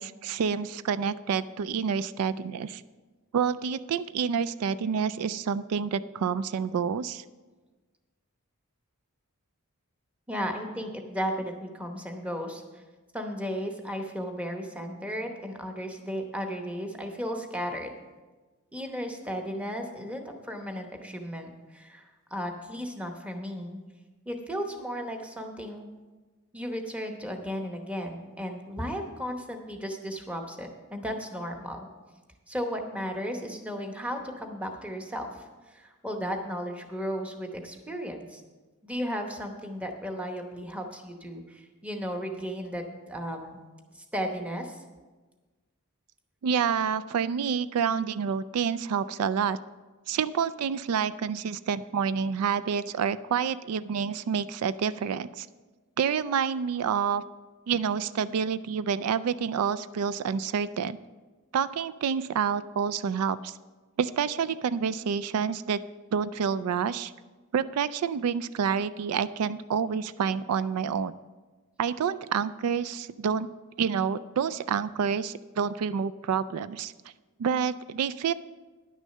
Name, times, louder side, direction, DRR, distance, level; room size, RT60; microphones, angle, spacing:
voice 1, 0.0-2.8 3.3-7.2 46.4-49.6 50.1-55.5 56.0-57.2 57.7-61.0 61.5-63.6 64.0-65.8 66.1-67.1 67.5-71.1 71.8-73.5 73.8-76.9 77.4-78.3, right 7 dB, 90° right, 16 dB, 0.4 m, -28 dB
voice 2, 10.3-12.6 13.1-17.9 18.7-23.8 24.3-25.9 26.5-31.8 32.5-35.3 35.7-38.4 38.8-43.6 44.1-44.8, equal, 5° right, 4 dB, 0.9 m, -35 dB
10.5 x 6.3 x 6.5 m, 1.3 s
head